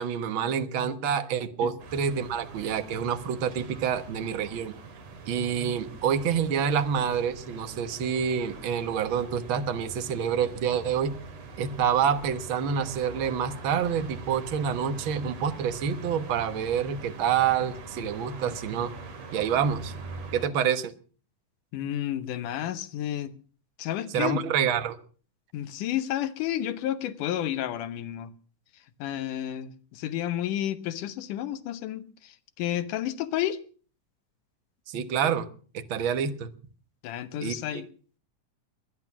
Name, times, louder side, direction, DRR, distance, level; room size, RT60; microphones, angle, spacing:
voice 1, 0.0-4.7 5.3-11.1 11.6-18.9 19.3-19.9 20.3-20.9 24.1-25.0 34.9-35.5 35.7-36.5 37.4-37.8, right 7 dB, 55° right, 1.6 m, -27 dB
sound 1, 1.8-20.5, right 4 dB, 75° right, 4.3 m, -43 dB
voice 2, 21.7-23.3 23.8-24.4 25.5-28.3 29.0-33.6 37.0-37.9, left 12 dB, 90° left, 2.6 m, -31 dB
21.5 x 11.0 x 6.0 m
omnidirectional pair, 3.6 m